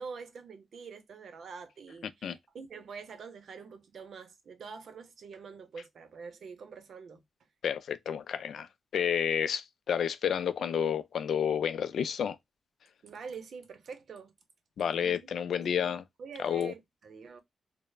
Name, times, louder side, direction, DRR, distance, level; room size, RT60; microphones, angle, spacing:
voice 1, 0.0-7.2 13.0-14.3 14.8-17.4, right 5 dB, 70° right, 0.6 m, -46 dB
voice 2, 7.6-12.4 14.8-16.0 16.4-16.7, left 8 dB, 80° left, 0.3 m, -30 dB
3.1 x 2.0 x 2.2 m
wide cardioid pair, 135°, 0 cm